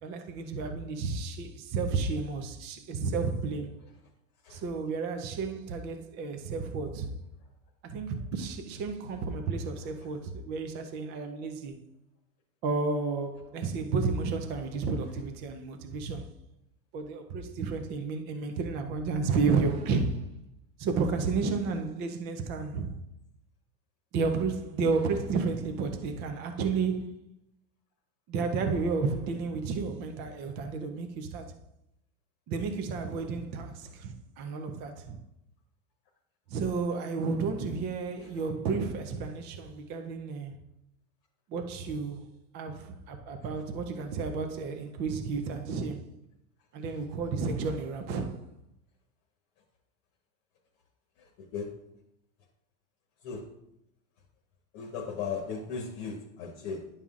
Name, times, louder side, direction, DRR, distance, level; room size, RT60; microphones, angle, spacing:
voice 1, 0.0-3.7 4.5-7.2 7.8-11.8 12.6-16.3 16.9-20.3 20.8-23.0 24.1-27.1 28.3-31.5 32.5-35.2 36.5-40.6 41.5-46.2 46.7-48.4, right 4 dB, 25° right, 0.4 m, -32 dB
voice 2, 51.2-51.8 53.2-53.5 54.7-56.9, left 5 dB, 40° left, 1.0 m, -37 dB
10.5 x 5.4 x 2.4 m
supercardioid pair, 140°, 44 cm